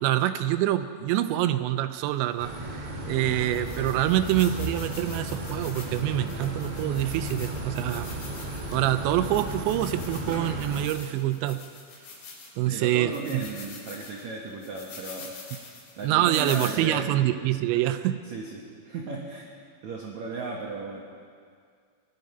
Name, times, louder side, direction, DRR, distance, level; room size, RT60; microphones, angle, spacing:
voice 1, 0.0-8.4 8.7-11.6 12.6-13.1 16.0-18.2, right 13 dB, 85° right, 11 dB, 2.9 m, -26 dB
sound 1, 2.4-2.5 3.1-3.2 3.5-12.7 13.1-16.7, left 4 dB, 80° left, 5.3 m, -45 dB
sound 2, 2.4-10.9, right 1 dB, 40° right, 2.8 m, -34 dB
voice 2, 12.7-15.3 16.0-17.5 18.2-19.4 19.8-21.0, right 3 dB, 70° right, -1 dB, 1.7 m, -36 dB
20.5 x 12.0 x 5.6 m, 2.1 s
omnidirectional pair, 5.2 m